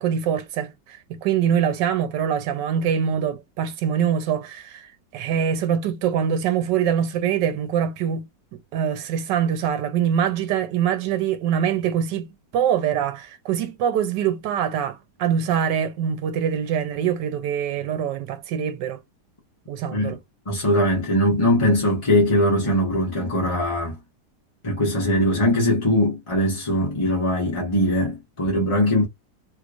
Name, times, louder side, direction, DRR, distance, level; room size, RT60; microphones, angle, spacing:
voice 1, 0.0-4.9 5.1-8.3 8.5-19.0 19.7-20.2, right 8 dB, 90° right, 1.4 m, -24 dB
voice 2, 20.5-24.0 24.6-29.0, equal, 20° left, 0.9 m, -21 dB
3.2 x 3.1 x 2.4 m
omnidirectional pair, 1.8 m